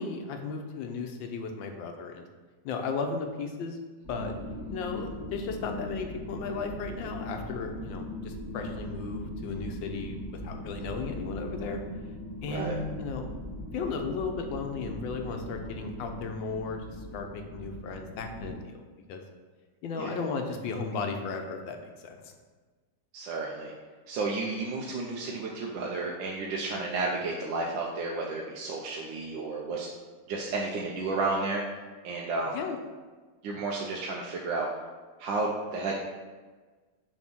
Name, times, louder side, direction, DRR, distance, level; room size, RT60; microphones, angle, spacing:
voice 1, 0.0-2.3 2.6-3.8 4.1-4.4 4.7-11.8 12.4-13.3 13.7-18.8 19.1-19.2 19.8-22.3 32.5-32.8, left 4 dB, 85° left, 4 dB, 1.5 m, -35 dB
sound 1, 4.0-18.5, left 1 dB, 40° left, 2.6 m, -40 dB
voice 2, 23.1-23.7 24.1-29.9 30.3-31.6 32.0-32.6 33.4-34.7 35.2-36.0, right 3 dB, 80° right, -2 dB, 1.4 m, -32 dB
6.4 x 3.5 x 6.0 m, 1.4 s
omnidirectional pair, 2.0 m